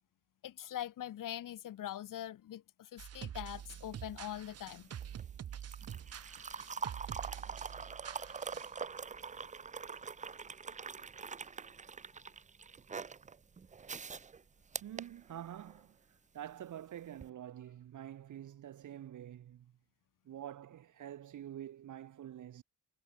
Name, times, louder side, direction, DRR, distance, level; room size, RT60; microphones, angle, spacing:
voice 1, 0.4-4.9, left 11 dB, 80° left, 1.5 m, -43 dB
sound 1, 3.0-8.8, right 9 dB, 50° right, 0.9 m, -46 dB
sound 2, 3.5-15.9 17.1-17.3, right 5 dB, 25° right, 0.6 m, -44 dB
voice 2, 14.8-19.7 20.2-22.6, right 11 dB, 70° right, 1.2 m, -47 dB
wide cardioid pair, 165°, 32 cm